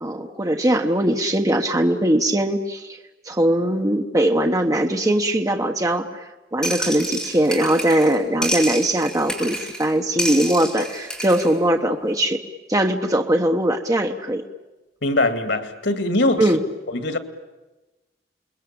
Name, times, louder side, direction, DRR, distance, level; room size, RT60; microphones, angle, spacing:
voice 1, 0.0-3.0 3.3-6.2 6.5-12.4 12.7-14.4 16.4-16.6, right 1 dB, 20° right, 1.2 m, -20 dB
sound 1, 6.6-8.2 8.4-9.9 10.2-11.5, equal, 5° left, 6.7 m, -28 dB
voice 2, 15.0-16.5 16.9-17.2, left 2 dB, 85° left, 2.1 m, -21 dB
29.0 x 21.5 x 8.7 m
head